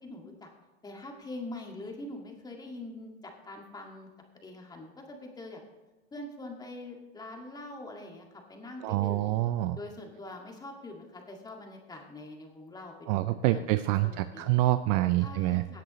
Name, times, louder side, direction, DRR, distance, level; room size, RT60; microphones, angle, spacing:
voice 1, 0.0-0.5 0.8-4.1 4.4-5.6 6.1-9.3 9.8-14.5 15.2-15.8, left 2 dB, 10° left, 1 dB, 2.0 m, -44 dB
voice 2, 8.8-9.8 13.1-15.8, right 16 dB, 40° right, 12 dB, 0.4 m, -27 dB
17.5 x 8.0 x 3.1 m, 1.2 s
hypercardioid pair, 130°, 33 cm